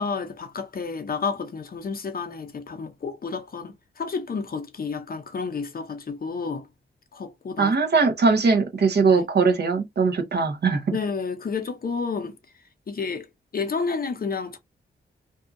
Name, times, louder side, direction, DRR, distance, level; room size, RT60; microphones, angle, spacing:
voice 1, 0.0-6.6 7.1-7.7 9.1-9.2 10.9-12.3 12.9-13.2 13.5-14.6, left 5 dB, 45° left, 0.7 m, -30 dB
voice 2, 7.6-10.9, right 4 dB, 55° right, 0.8 m, -21 dB
2.6 x 2.4 x 2.5 m
cardioid pair, 75°, 20 cm